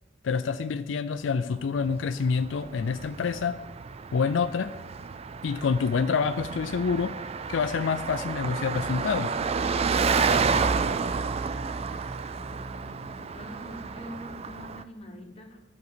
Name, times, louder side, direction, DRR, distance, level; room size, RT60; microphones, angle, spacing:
voice 1, 0.2-3.6 4.1-4.7 5.4-7.2 7.5-9.3, left 5 dB, 75° left, 10 dB, 0.4 m, -27 dB
Car passing by, 1.6-14.8, right 5 dB, 30° right, 0.4 m, -30 dB
voice 2, 11.6-15.6, equal, 30° left, 3 dB, 1.3 m, -45 dB
11.0 x 5.2 x 6.7 m, 1.1 s
head